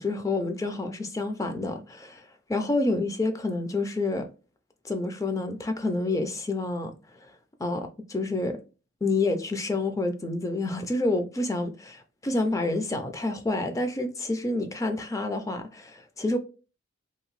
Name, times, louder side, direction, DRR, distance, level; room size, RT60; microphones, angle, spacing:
voice 1, 0.0-4.3 4.8-7.0 7.2-7.3 7.6-8.6 9.0-16.4, left 2 dB, 15° left, 0.3 m, -28 dB
2.8 x 2.5 x 3.0 m
head